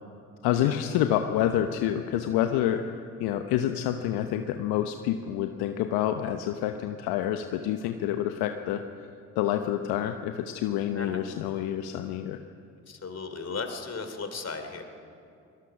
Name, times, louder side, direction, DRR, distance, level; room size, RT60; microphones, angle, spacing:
voice 1, 0.4-2.8 3.2-8.8 9.4-12.4, left 11 dB, 70° left, 7 dB, 1.0 m, -28 dB
voice 2, 12.9-14.8, left 4 dB, 40° left, 7 dB, 3.3 m, -36 dB
24.0 x 19.0 x 6.0 m, 2.5 s
hypercardioid pair, 50°, 39 cm